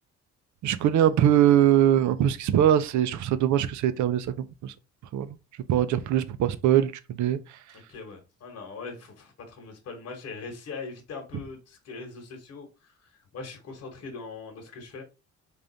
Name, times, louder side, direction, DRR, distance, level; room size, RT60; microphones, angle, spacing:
voice 1, 0.6-4.3 4.6-4.7 5.1-5.3 5.7-6.9 7.2-7.4, right 11 dB, 70° right, 0.5 m, -21 dB
voice 2, 7.7-12.9 13.3-15.0, left 4 dB, 55° left, 1.2 m, -41 dB
3.5 x 2.5 x 3.9 m
cardioid pair, 90°, 30 cm